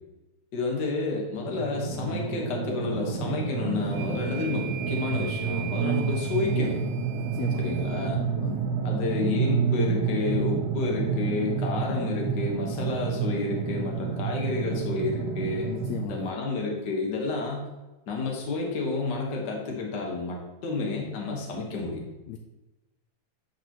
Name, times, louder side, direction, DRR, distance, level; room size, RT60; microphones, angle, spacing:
voice 1, 0.5-6.8 7.6-8.2 8.8-15.7 16.1-17.7 18.1-22.1, left 3 dB, 45° left, -1 dB, 1.5 m, -30 dB
sound 1, 1.4-16.1, right 6 dB, 60° right, 1.4 m, -29 dB
sound 2, 3.8-8.1, right 10 dB, 85° right, 2.0 m, -41 dB
voice 2, 7.1-8.7 15.7-16.3 22.3-22.4, left 9 dB, 80° left, 4 dB, 1.6 m, -38 dB
9.5 x 5.7 x 3.0 m, 1.0 s
omnidirectional pair, 3.5 m